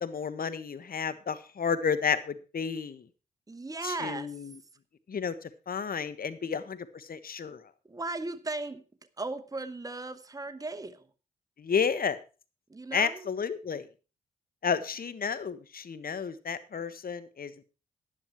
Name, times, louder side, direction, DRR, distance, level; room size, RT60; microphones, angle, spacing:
voice 1, 0.0-3.0 3.8-4.5 5.1-5.3 5.7-7.6 11.6-12.2 12.9-13.9 14.6-17.6, left 6 dB, 55° left, 1.4 m, -31 dB
voice 2, 3.5-4.4 6.4-6.5 7.9-8.8 9.2-11.0 12.7-13.3, right 2 dB, 20° right, 1.1 m, -37 dB
11.0 x 10.5 x 4.6 m
supercardioid pair, 45°, 18 cm